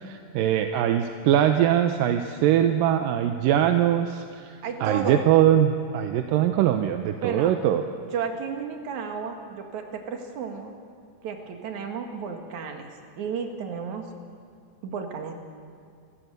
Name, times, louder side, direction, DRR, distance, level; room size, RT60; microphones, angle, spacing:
voice 1, 0.0-7.8, right 10 dB, 80° right, 7 dB, 2.4 m, -22 dB
voice 2, 4.6-5.2 7.2-7.5 8.1-10.7 11.2-12.9 13.2-14.0 14.8-15.3, right 6 dB, 60° right, 4 dB, 3.1 m, -32 dB
27.5 x 14.5 x 8.0 m, 2.2 s
omnidirectional pair, 4.1 m